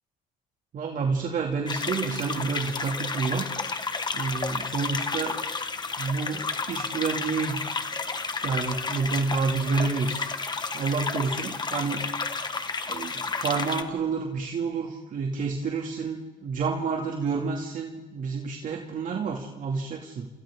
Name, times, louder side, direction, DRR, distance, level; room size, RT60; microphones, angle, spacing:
voice 1, 0.7-3.5 4.1-5.4 6.0-7.6 8.4-12.1 12.9-20.3, right 4 dB, 50° right, 0 dB, 2.7 m, -29 dB
sound 1, 1.7-13.8, left 4 dB, 25° left, 1.5 m, -31 dB
28.0 x 28.0 x 3.8 m, 1.1 s
cardioid pair, 110°, 17 cm